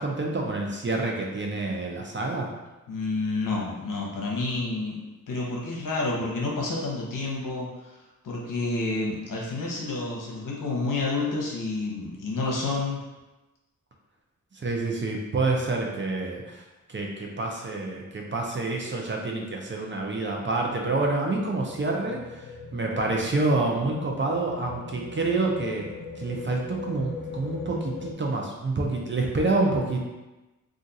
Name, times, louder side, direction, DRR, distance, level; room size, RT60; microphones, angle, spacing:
voice 1, 0.0-2.5 14.5-16.6 16.9-25.9 26.2-30.0, right 3 dB, 35° right, 0 dB, 0.6 m, -28 dB
voice 2, 2.9-5.0 5.3-8.0 8.2-13.0, left 3 dB, 65° left, -3 dB, 0.9 m, -29 dB
sound 1, 19.8-28.1, left 4 dB, 90° left, 0.6 m, -40 dB
2.5 x 2.4 x 4.0 m, 1.1 s
cardioid pair, 65°, 35 cm